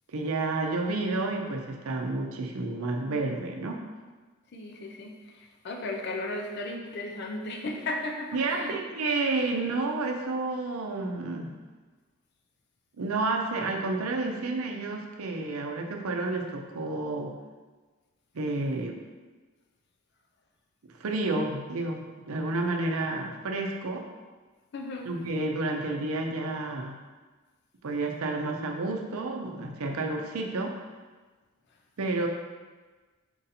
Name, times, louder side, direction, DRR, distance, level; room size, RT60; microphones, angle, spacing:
voice 1, 0.1-3.8 8.3-11.5 13.0-17.3 18.3-19.0 21.0-24.0 25.1-27.0 27.8-30.7 32.0-32.3, right 2 dB, 85° right, 2 dB, 0.6 m, -30 dB
voice 2, 4.5-8.8 24.7-25.1, left 2 dB, 50° left, 2 dB, 0.5 m, -35 dB
4.6 x 2.7 x 4.1 m, 1.3 s
head